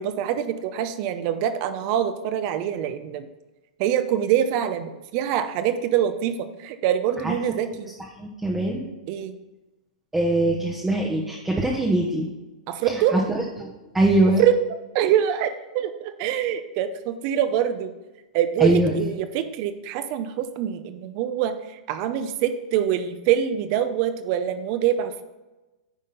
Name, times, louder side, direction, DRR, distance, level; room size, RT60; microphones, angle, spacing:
voice 1, 0.0-3.3 3.8-7.9 9.1-9.4 12.7-13.2 14.4-14.6 14.9-17.9 18.3-25.2, right 10 dB, 45° right, 10 dB, 0.7 m, -24 dB
voice 2, 8.2-8.9 10.1-12.3 12.9-13.2 13.6-14.4 18.6-19.1, right 1 dB, 5° right, -2 dB, 0.9 m, -22 dB
9.8 x 3.6 x 5.5 m, 1.1 s
hypercardioid pair, 125°, 4 cm